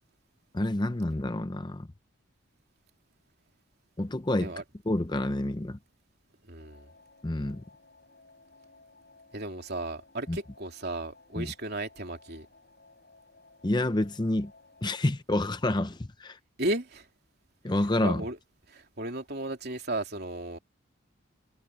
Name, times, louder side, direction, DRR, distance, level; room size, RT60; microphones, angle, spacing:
voice 1, 0.5-1.9 4.0-4.5 4.9-5.8 7.2-7.6 10.3-10.4 11.4-11.5 13.6-14.5 14.8-16.4 17.6-18.2, left 1 dB, 20° left, 0.6 m, -28 dB
voice 2, 6.5-6.9 9.3-12.5 16.6-17.1 18.0-18.4 18.7-20.6, right 2 dB, 50° right, 3.4 m, -34 dB
sound 1, 6.6-15.0, left 3 dB, 50° left, 7.5 m, -58 dB
head